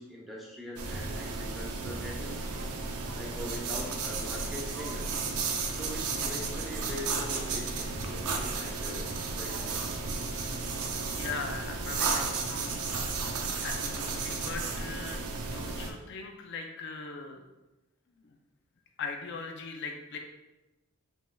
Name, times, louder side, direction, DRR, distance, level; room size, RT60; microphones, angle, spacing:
voice 1, 0.0-2.4 3.2-5.3 5.7-10.0, left 1 dB, ahead, -3 dB, 0.6 m, -43 dB
sound 1, 0.8-15.9, right 4 dB, 80° right, 0.5 m, -33 dB
voice 2, 11.2-12.8 13.6-17.4 18.2-18.4 19.0-20.2, left 4 dB, 50° left, 2 dB, 0.4 m, -40 dB
5.4 x 3.2 x 2.3 m, 1.1 s
head